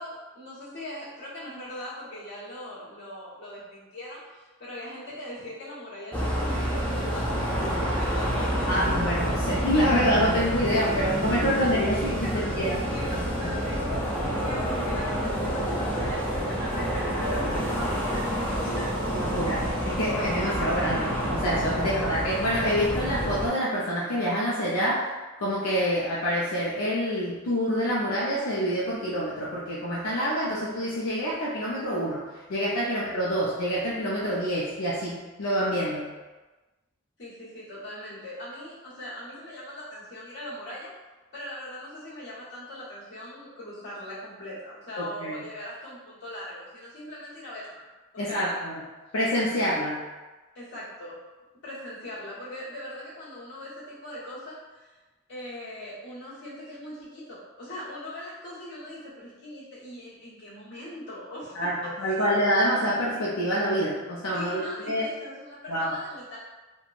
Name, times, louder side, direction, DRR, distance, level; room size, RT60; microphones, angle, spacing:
voice 1, 0.0-8.7 10.7-11.4 12.2-18.4 18.7-18.9 21.7-21.9 32.8-32.9 37.2-40.9 41.3-47.8 48.3-48.6 50.5-51.2 51.6-55.0 55.3-62.3 64.3-66.4, left 1 dB, 55° left, -11 dB, 1.3 m, -40 dB
sound 1, 6.1-23.5, equal, 10° left, 0.4 m, -28 dB
voice 2, 8.7-12.8 18.8-32.2 32.5-36.1 45.0-45.3 48.2-48.8 49.1-50.0 61.6-65.1 65.7-65.9, equal, 85° left, -6 dB, 0.5 m, -27 dB
3.1 x 2.2 x 2.4 m, 1.2 s
head